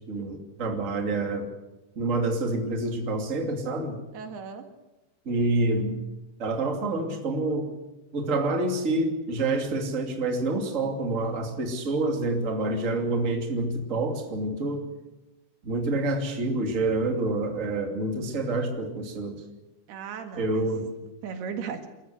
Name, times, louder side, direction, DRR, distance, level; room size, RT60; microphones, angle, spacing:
voice 1, 0.0-1.5 2.0-4.0 5.2-6.0 6.4-7.8 8.1-14.9 15.6-19.4 20.4-20.9, right 2 dB, 20° right, 3 dB, 2.5 m, -27 dB
voice 2, 4.1-4.7 19.9-20.7 21.2-21.9, right 6 dB, 80° right, 7 dB, 3.9 m, -36 dB
27.5 x 14.0 x 8.0 m, 1.0 s
omnidirectional pair, 4.6 m